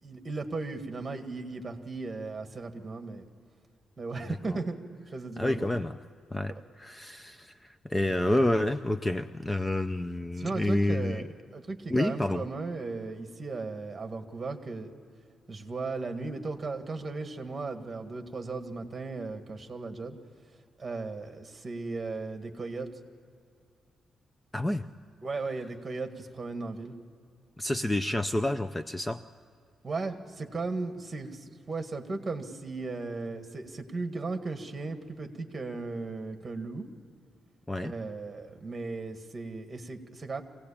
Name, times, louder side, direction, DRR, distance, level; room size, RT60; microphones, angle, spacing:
voice 1, 0.0-3.3 4.0-4.8 5.1-5.7 6.5-6.6 10.4-11.2 11.5-14.9 15.5-20.2 20.8-22.9 25.2-26.9 29.8-36.9 37.8-40.4, right 3 dB, 25° right, 6 dB, 1.9 m, -36 dB
voice 2, 4.2-4.6 5.4-6.0 6.3-11.2 11.9-12.4 24.5-24.8 27.6-29.2 37.7-37.9, left 1 dB, 10° left, 11 dB, 0.5 m, -29 dB
24.5 x 17.5 x 8.6 m, 2.4 s
cardioid pair, 120°, 0 cm